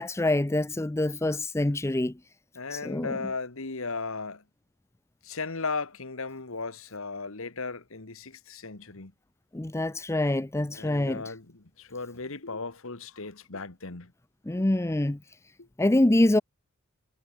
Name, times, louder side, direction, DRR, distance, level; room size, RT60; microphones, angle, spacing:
voice 1, 0.0-2.1 2.7-3.1 9.5-11.2 14.5-15.2 15.8-16.4, left 1 dB, 15° left, 0.6 m, -25 dB
voice 2, 2.6-4.4 5.2-9.1 10.7-14.1 15.6-15.7, left 4 dB, 65° left, 1.8 m, -36 dB
head